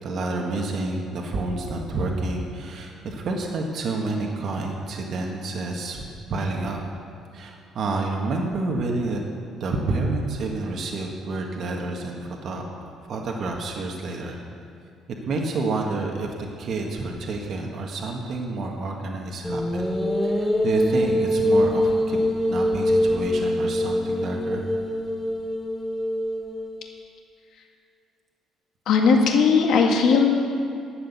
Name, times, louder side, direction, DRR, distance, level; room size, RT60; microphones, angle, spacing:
voice 1, 0.0-6.8 7.3-9.2 9.6-12.6 13.0-14.4 15.1-19.9 20.2-24.7, right 3 dB, 50° right, 0 dB, 1.5 m, -29 dB
sound 1, 19.4-26.8, left 1 dB, 10° left, 1.3 m, -24 dB
voice 2, 28.9-30.3, left 5 dB, 65° left, 1 dB, 1.7 m, -18 dB
11.5 x 7.9 x 8.1 m, 2.5 s
cardioid pair, 150°, 0 cm